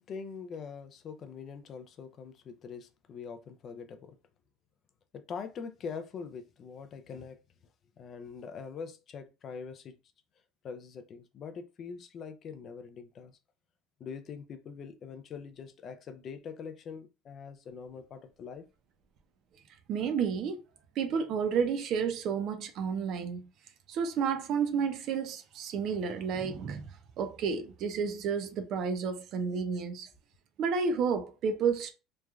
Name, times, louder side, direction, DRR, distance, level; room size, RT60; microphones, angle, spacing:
voice 1, 0.0-4.2 5.1-7.4 8.0-10.0 10.6-13.4 14.0-18.7, left 6 dB, 35° left, 0.3 m, -43 dB
voice 2, 19.9-20.6 21.0-23.4 23.9-26.9 27.2-30.1 30.6-31.9, right 6 dB, 45° right, 0.5 m, -31 dB
3.0 x 2.3 x 2.3 m
cardioid pair, 145°, 0 cm